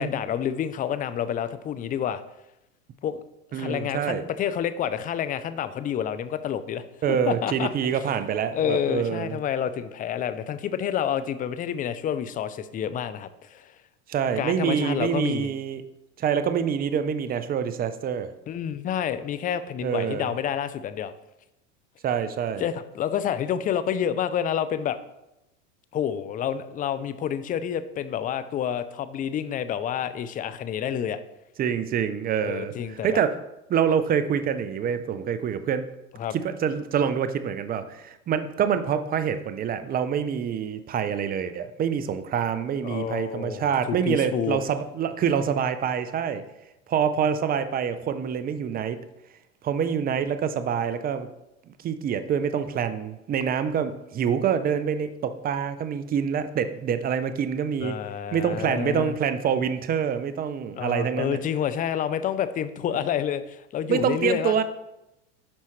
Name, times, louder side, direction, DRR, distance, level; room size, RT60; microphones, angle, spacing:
voice 1, 0.0-2.2 3.0-3.2 3.5-6.8 7.3-7.7 8.5-13.7 14.4-15.5 18.5-21.1 22.6-25.0 25.9-31.2 32.4-33.2 36.2-36.4 42.8-44.6 57.8-59.1 60.8-64.6, left 9 dB, 25° left, 13 dB, 0.5 m, -29 dB
voice 2, 3.5-4.2 7.0-9.4 14.1-15.9 16.2-18.3 19.8-20.3 22.0-22.6 31.6-33.4 33.7-35.9 36.3-46.4 46.9-49.0 49.6-51.3 51.8-58.0 58.3-61.4 62.9-63.0 63.9-64.6, right 7 dB, 25° right, 11 dB, 0.6 m, -26 dB
8.5 x 5.6 x 3.2 m, 0.89 s
hypercardioid pair, 105°, 36 cm